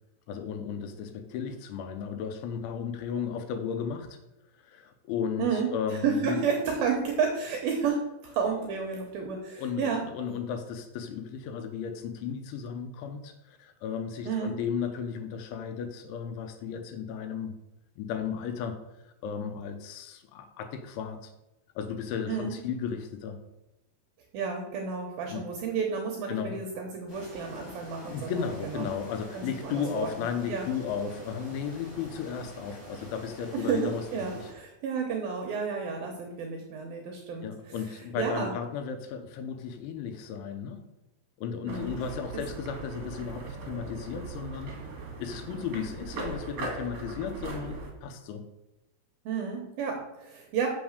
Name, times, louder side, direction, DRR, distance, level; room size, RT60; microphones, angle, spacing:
voice 1, 0.3-4.2 4.6-6.4 9.6-17.5 18.0-18.8 19.2-21.3 21.8-23.4 25.3-25.5 26.3-26.6 28.0-34.3 37.4-40.8 41.4-44.8 45.2-48.4, left 7 dB, 85° left, 7 dB, 3.2 m, -34 dB
voice 2, 5.4-10.0 14.3-14.5 22.3-22.5 24.3-28.9 29.3-30.7 33.5-38.5 41.7-41.9 49.3-50.7, right 6 dB, 75° right, 1 dB, 2.3 m, -31 dB
sound 1, 27.1-34.5, equal, 15° left, 3.7 m, -47 dB
sound 2, 41.7-47.9, right 3 dB, 45° right, 2.3 m, -39 dB
6.9 x 6.3 x 6.5 m, 0.93 s
omnidirectional pair, 5.4 m